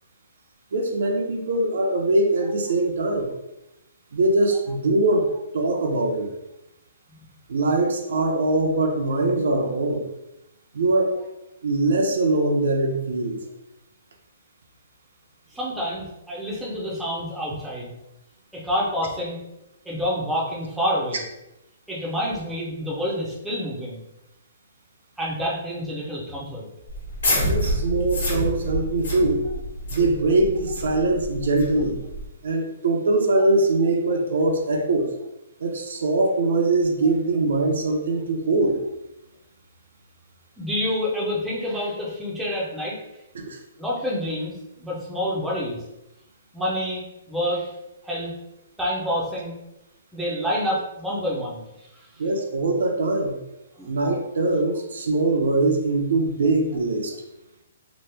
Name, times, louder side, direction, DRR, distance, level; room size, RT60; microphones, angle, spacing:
voice 1, 0.7-3.3 4.1-6.3 7.5-10.1 10.7-11.3 11.6-13.4 27.5-29.4 29.9-32.0 32.4-35.1 35.6-38.8 43.3-43.6 52.2-53.4 53.9-57.1, right 2 dB, 70° right, 2 dB, 0.5 m, -22 dB
voice 2, 15.5-17.9 18.5-19.4 19.8-21.2 21.9-24.0 25.2-26.7 40.6-43.0 43.8-45.8 46.5-47.7 48.0-48.3 48.8-49.6 50.1-51.6 51.9-52.1 53.8-53.9, equal, ahead, -6 dB, 0.5 m, -28 dB
sound 1, 26.9-32.3, equal, 85° left, 1.3 m, -28 dB
3.0 x 2.0 x 3.3 m, 0.90 s
hypercardioid pair, 165°, 0 cm